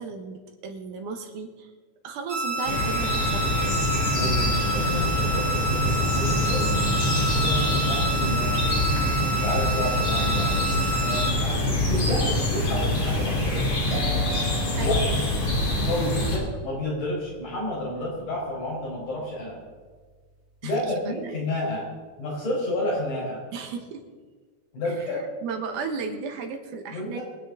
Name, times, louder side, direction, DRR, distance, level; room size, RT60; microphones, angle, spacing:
voice 1, 0.0-1.7 2.0-4.1 14.8-15.2 20.6-21.3 23.5-24.0 24.8-25.1 25.4-27.2, right 5 dB, 80° right, 5 dB, 2.7 m, -35 dB
sound 1, 2.3-11.3, right 1 dB, 45° right, 2.8 m, -29 dB
sound 2, 2.7-16.4, left 1 dB, 45° left, 3.7 m, -25 dB
voice 2, 4.1-6.8 7.4-8.7 9.3-10.5 11.0-13.7 14.8-15.2 15.9-19.6 20.6-21.8 22.2-23.4 24.7-25.2 26.9-27.2, left 1 dB, 80° left, -4 dB, 6.2 m, -30 dB
sound 3, 13.9-21.5, right 1 dB, 25° right, 1.6 m, -41 dB
23.0 x 9.2 x 3.9 m, 1.4 s
omnidirectional pair, 3.6 m